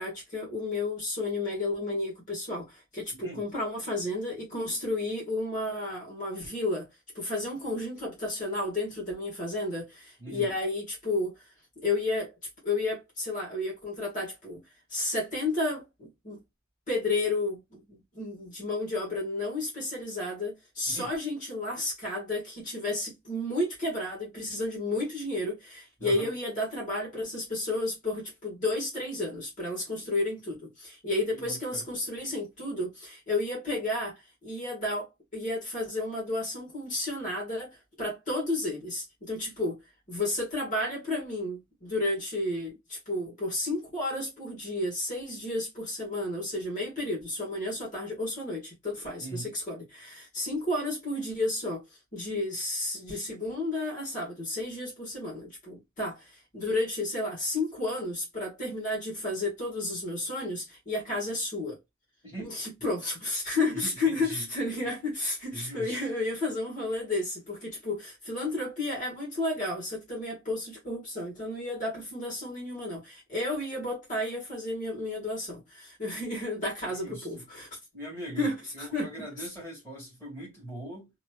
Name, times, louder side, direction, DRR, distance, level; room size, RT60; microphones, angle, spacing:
voice 1, 0.0-6.9 7.1-11.3 11.8-12.3 12.6-14.6 14.9-16.4 16.9-39.8 40.1-51.8 52.1-61.8 62.4-77.7 78.4-79.1 79.4-79.5, left 2 dB, 40° left, 1.5 m, -32 dB
voice 2, 10.2-10.6 20.9-21.1 26.0-26.4 31.3-31.9 49.2-49.5 62.2-62.5 63.7-64.5 65.5-66.0 77.0-77.4 77.9-78.5 78.7-81.1, right 1 dB, 10° left, 1.9 m, -41 dB
2.9 x 2.9 x 2.3 m
head